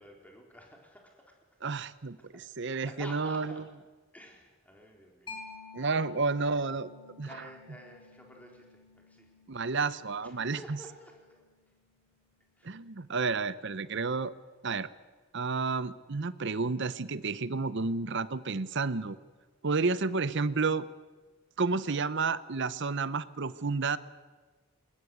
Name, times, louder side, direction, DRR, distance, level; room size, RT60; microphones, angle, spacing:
voice 1, 0.0-1.4 2.2-2.3 2.8-3.6 4.1-5.4 5.8-6.0 7.2-9.3 10.2-11.3 12.6-12.8, left 1 dB, 5° left, 0 dB, 4.2 m, -51 dB
voice 2, 1.6-3.6 5.7-6.9 7.2-7.3 9.5-10.8 12.6-14.3 14.6-14.9 15.3-19.2 19.6-20.9 21.6-24.0, right 4 dB, 55° right, 16 dB, 0.8 m, -31 dB
Mallet percussion, 5.3-12.5, left 4 dB, 20° left, 4.8 m, -52 dB
20.5 x 20.5 x 8.6 m, 1.4 s
head